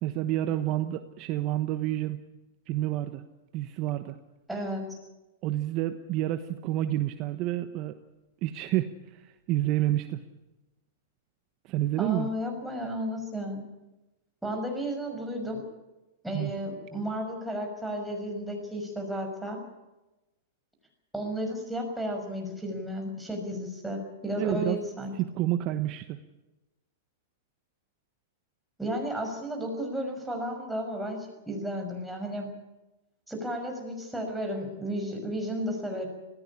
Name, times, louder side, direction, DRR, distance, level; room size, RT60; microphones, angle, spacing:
voice 1, 0.0-2.2 2.7-3.2 3.5-4.2 5.4-8.0 8.4-10.2 11.6-12.3 16.3-16.5 24.4-24.8 25.2-26.2, right 14 dB, 40° right, 9 dB, 1.1 m, -29 dB
voice 2, 4.5-5.0 12.0-13.6 14.4-15.6 16.2-19.6 21.1-25.1 28.8-32.5 33.3-36.1, equal, 5° right, 1 dB, 6.0 m, -33 dB
19.5 x 16.0 x 10.0 m, 1.0 s
hypercardioid pair, 130°, 0 cm